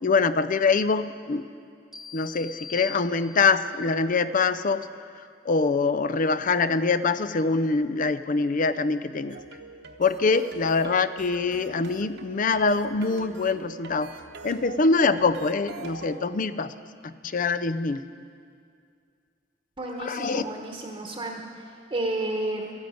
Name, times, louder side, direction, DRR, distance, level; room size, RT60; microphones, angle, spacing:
voice 1, 0.0-1.4 2.1-4.9 5.4-9.4 10.0-14.1 14.4-16.7 17.0-18.0 20.0-20.4, left 4 dB, 45° left, 14 dB, 0.5 m, -24 dB
sound 1, 1.9-3.7, left 6 dB, 5° right, 1.1 m, -42 dB
sound 2, 9.3-16.2, right 3 dB, 65° right, 1.0 m, -44 dB
voice 2, 19.8-22.7, right 2 dB, 25° right, 1 dB, 1.1 m, -32 dB
13.0 x 10.5 x 9.4 m, 2.3 s
head